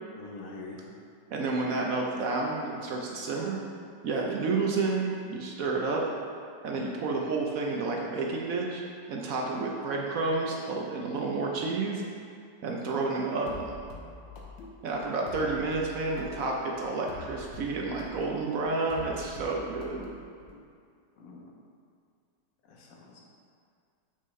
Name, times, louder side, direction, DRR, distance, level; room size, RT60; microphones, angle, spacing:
voice 1, 0.2-0.8 21.2-21.4 22.7-23.2, left 3 dB, 55° left, -2 dB, 1.1 m, -44 dB
voice 2, 1.3-3.6 4.0-6.0 6.6-8.8 9.1-12.0 12.6-13.7 14.8-20.1, right 3 dB, 65° right, -1 dB, 0.8 m, -30 dB
sound 1, 13.5-20.6, left 3 dB, 75° left, 1.4 m, -46 dB
6.9 x 5.4 x 3.2 m, 2.3 s
omnidirectional pair, 2.1 m